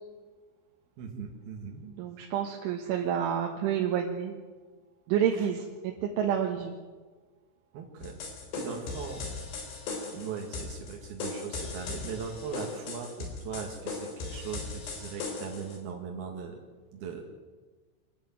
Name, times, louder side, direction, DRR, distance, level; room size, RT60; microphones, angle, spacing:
voice 1, 1.0-1.8 5.3-5.5 7.7-8.2 8.5-9.2 10.1-16.6 16.9-17.2, right 6 dB, 60° right, 1 dB, 3.4 m, -39 dB
voice 2, 1.8-4.4 5.1-6.7, right 9 dB, 75° right, 1 dB, 3.9 m, -29 dB
sound 1, 8.0-15.8, left 3 dB, 60° left, 5.6 m, -38 dB
25.0 x 14.0 x 9.1 m, 1.4 s
omnidirectional pair, 5.6 m